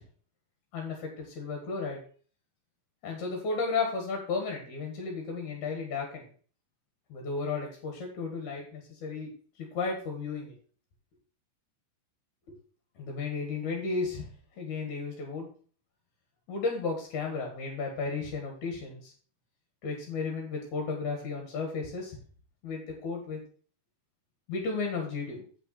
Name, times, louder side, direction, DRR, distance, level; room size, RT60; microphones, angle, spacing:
voice 1, 0.7-2.0 3.0-6.3 7.1-9.3 9.6-10.5 12.5-12.6 13.0-14.3 14.6-15.5 16.5-19.1 19.8-22.2 22.6-23.4 24.5-25.4, left 4 dB, 55° left, 1 dB, 2.2 m, -34 dB
8.3 x 7.0 x 4.2 m, 0.43 s
omnidirectional pair, 5.6 m